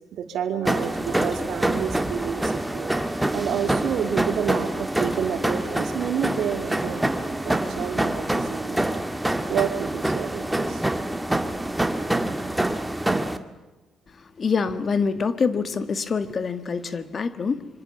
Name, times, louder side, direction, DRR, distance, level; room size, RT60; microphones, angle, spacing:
voice 1, 0.1-2.9 3.3-8.8 9.5-10.8, right 8 dB, 75° right, 7 dB, 2.9 m, -29 dB
sound 1, 0.6-13.4, right 1 dB, 10° right, 1.8 m, -26 dB
voice 2, 14.4-17.7, left 5 dB, 40° left, 12 dB, 1.7 m, -25 dB
26.0 x 24.5 x 7.1 m, 1.2 s
cardioid pair, 90°, 0 cm